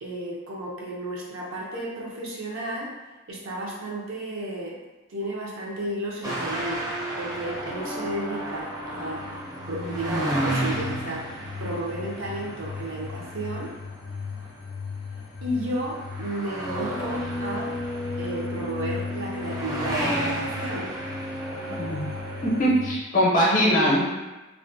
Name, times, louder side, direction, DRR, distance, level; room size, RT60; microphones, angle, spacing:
voice 1, 0.0-2.9 3.3-4.7 5.1-6.9 7.2-9.2 9.7-11.2 11.6-13.7 15.4-17.8 18.2-20.9 23.6-23.9, right 1 dB, 75° right, -3 dB, 0.6 m, -33 dB
sound 1, 6.2-14.5 15.2-15.5 15.9-22.7, right 1 dB, 20° right, 0.5 m, -32 dB
sound 2, 6.7-23.0, left 5 dB, 85° left, 0.3 m, -39 dB
voice 2, 21.7-22.1 22.4-24.0, equal, 40° left, -5 dB, 0.6 m, -21 dB
2.4 x 2.1 x 2.5 m, 1.1 s
head